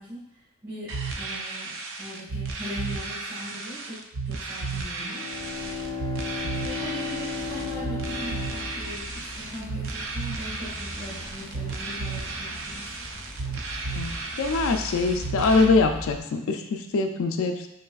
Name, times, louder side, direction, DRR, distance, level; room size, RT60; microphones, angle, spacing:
voice 1, 0.0-5.2 6.6-13.2, left 1 dB, 40° right, -12 dB, 1.4 m, -40 dB
sound 1, 0.9-15.6, right 4 dB, 65° right, 0.4 m, -34 dB
Bowed string instrument, 5.0-9.6, left 5 dB, 85° right, 1.0 m, -35 dB
sound 2, 5.3-16.2, left 1 dB, ahead, 0.5 m, -41 dB
voice 2, 13.9-17.7, left 3 dB, 65° left, 5 dB, 0.4 m, -23 dB
4.7 x 3.2 x 2.3 m, 0.83 s
head